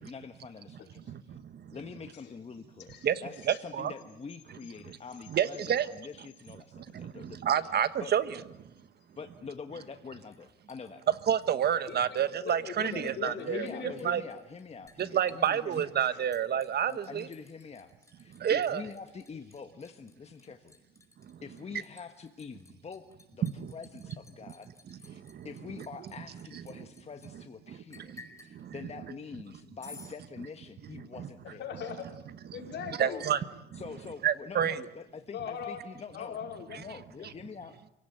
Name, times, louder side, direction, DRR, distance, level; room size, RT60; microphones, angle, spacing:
voice 1, 0.0-1.4 1.7-7.4 8.0-8.1 9.2-11.0 12.8-15.9 16.9-20.8 21.4-23.5 23.7-24.7 24.9-31.6 33.0-33.3 33.7-36.4 36.7-37.8, left 5 dB, 35° left, 7 dB, 1.4 m, -45 dB
voice 2, 1.1-1.7 3.0-3.9 4.9-5.0 5.3-5.9 6.7-8.2 11.3-13.7 14.0-14.2 15.0-17.3 18.3-18.8 21.3-21.4 23.4-23.7 24.9-25.5 27.7-28.8 31.2-31.3 33.0-33.4 33.7-33.8 34.2-34.8, right 9 dB, 60° right, 14 dB, 1.3 m, -29 dB
voice 3, 2.9-3.6 11.9-14.1 16.1-16.2 31.6-32.1 32.5-33.3 35.3-35.8 36.1-36.8 37.1-37.3, left 7 dB, 65° left, 3 dB, 4.8 m, -40 dB
Liquid, 10.3-12.2 12.5-13.1 13.4-27.3 27.9-28.5 29.8-30.2, left 3 dB, 15° left, 5.4 m, -55 dB
29.0 x 17.5 x 9.3 m, 0.89 s
cardioid pair, 95°, 19 cm